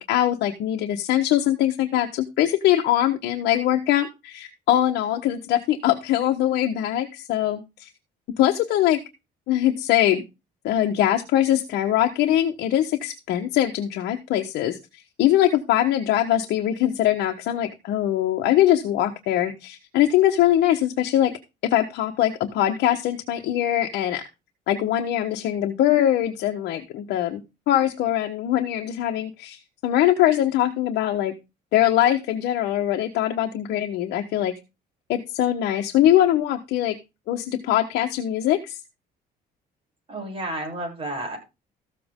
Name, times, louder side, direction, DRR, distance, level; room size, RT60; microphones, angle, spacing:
voice 1, 0.0-7.9 8.4-9.0 9.5-10.2 10.6-14.8 15.2-21.3 21.6-24.2 24.7-31.3 31.7-34.5 35.1-37.0 37.3-38.8, left 12 dB, 80° left, 3 dB, 1.3 m, -22 dB
voice 2, 40.1-41.4, right 1 dB, 35° right, 1 dB, 7.5 m, -31 dB
14.0 x 7.7 x 3.7 m, 0.26 s
cardioid pair, 110°, 17 cm